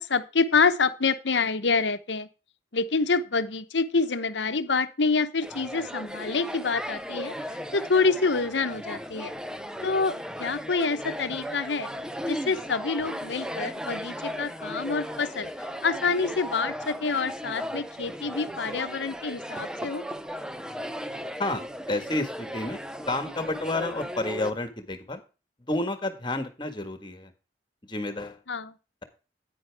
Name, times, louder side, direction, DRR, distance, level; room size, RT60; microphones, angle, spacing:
voice 1, 0.0-2.3 2.7-9.3 9.8-11.9 12.3-20.0 28.5-28.7, left 4 dB, 80° left, 11 dB, 1.0 m, -27 dB
sound 1, 5.4-24.5, equal, 5° right, 0.6 m, -36 dB
voice 2, 21.9-22.8 23.1-25.2 25.7-27.3 27.8-28.4, left 2 dB, 25° left, 8 dB, 1.6 m, -30 dB
9.9 x 9.4 x 3.5 m, 0.32 s
head